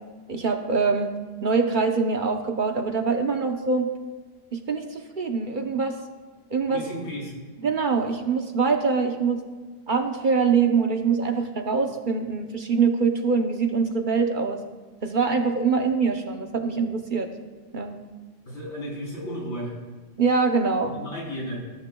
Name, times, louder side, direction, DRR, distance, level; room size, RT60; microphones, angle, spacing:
voice 1, 0.3-1.1 1.4-3.9 4.5-6.0 6.5-6.8 7.6-9.4 9.9-14.6 15.0-17.3 17.7-18.0 20.2-21.0, right 5 dB, 50° right, 4 dB, 0.9 m, -24 dB
voice 2, 6.7-7.3 18.5-19.8 20.8-21.6, equal, 75° left, -4 dB, 4.1 m, -33 dB
19.0 x 11.0 x 2.3 m, 1.4 s
omnidirectional pair, 1.2 m